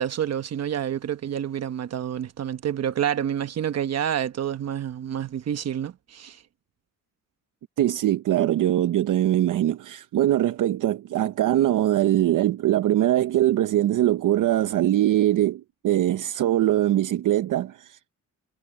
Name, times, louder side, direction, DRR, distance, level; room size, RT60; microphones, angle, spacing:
voice 1, 0.0-6.4, right 9 dB, 50° right, 1.1 m, -28 dB
voice 2, 7.8-18.1, right 13 dB, 70° right, 0.7 m, -22 dB
wide cardioid pair, 165°, 33 cm